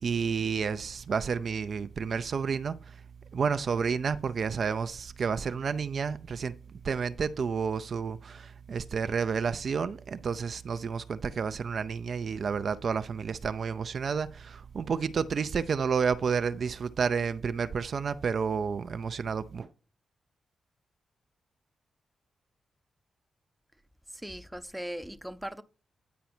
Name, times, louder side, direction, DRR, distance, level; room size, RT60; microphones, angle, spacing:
voice 1, 0.0-3.0 3.3-6.6 6.8-19.7, right 6 dB, 65° right, 0.4 m, -30 dB
voice 2, 24.1-25.6, equal, 5° right, 0.7 m, -39 dB
9.3 x 4.6 x 4.3 m
supercardioid pair, 45°, 0 cm